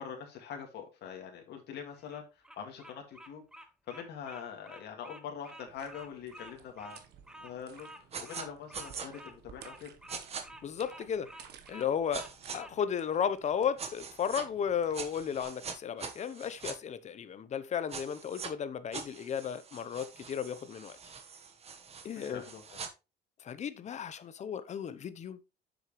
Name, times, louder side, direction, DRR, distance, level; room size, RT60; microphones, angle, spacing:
voice 1, 0.0-3.4 3.9-7.0 7.4-9.9 22.3-22.8, left 7 dB, 65° left, 2.0 m, -44 dB
Bird vocalization bird call bird song, 1.9-12.7, equal, 5° right, 0.8 m, -51 dB
sound 1, 5.6-15.4, right 8 dB, 60° right, 1.2 m, -57 dB
sound 2, 8.1-8.4 8.7-9.1 10.1-10.4 12.1-12.6 13.8-14.4 14.9-16.7 17.9-18.5 18.9-22.9, right 6 dB, 35° right, 1.2 m, -43 dB
voice 2, 10.6-11.3 11.7-12.3 12.5-21.0 22.0-22.4 23.4-25.4, left 8 dB, 40° left, 0.8 m, -34 dB
7.6 x 6.5 x 3.1 m
cardioid pair, 130°, 19 cm